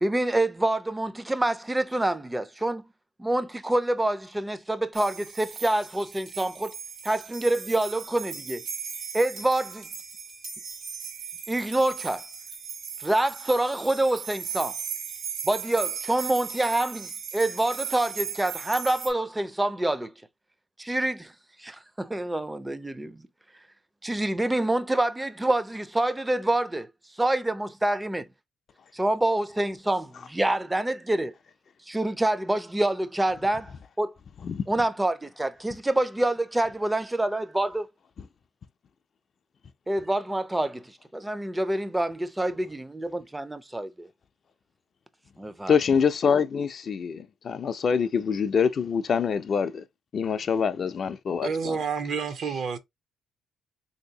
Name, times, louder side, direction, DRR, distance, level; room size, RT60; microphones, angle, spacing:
voice 1, 0.0-2.8 3.2-6.7 7.0-8.6 9.1-9.9 11.5-12.2 13.0-14.8 15.4-20.1 20.8-21.3 21.6-23.2 24.0-26.9 27.2-28.3 28.9-31.3 31.9-34.1 34.7-37.9 39.9-44.1 45.4-45.8, right 1 dB, 10° right, 0.4 m, -26 dB
sound 1, 4.9-19.1, right 7 dB, 80° right, 1.4 m, -37 dB
voice 2, 45.7-49.8 50.1-51.8, left 6 dB, 50° left, 0.4 m, -25 dB
voice 3, 51.4-52.8, right 6 dB, 60° right, 0.6 m, -29 dB
3.3 x 2.7 x 2.7 m
cardioid pair, 90°, 0 cm